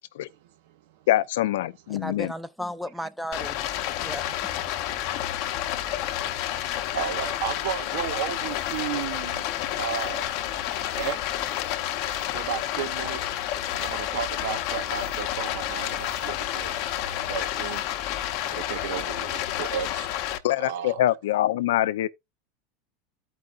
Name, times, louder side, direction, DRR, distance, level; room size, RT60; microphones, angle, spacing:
voice 1, 1.1-2.3 20.4-22.1, left 13 dB, 85° left, 0.5 m, -24 dB
voice 2, 1.9-3.6 4.0-4.3 5.8-6.0, equal, ahead, 0.5 m, -35 dB
Stream, 3.3-20.4, left 12 dB, 50° left, 0.8 m, -30 dB
voice 3, 6.7-9.5 9.8-10.3 11.0-11.5 12.3-13.4 13.8-16.8 17.1-17.8 18.4-20.1 20.6-21.0, right 10 dB, 65° right, 0.7 m, -33 dB
sound 1, 8.1-17.8, right 6 dB, 85° right, 1.8 m, -50 dB
13.5 x 4.8 x 2.5 m
supercardioid pair, 160°, 0 cm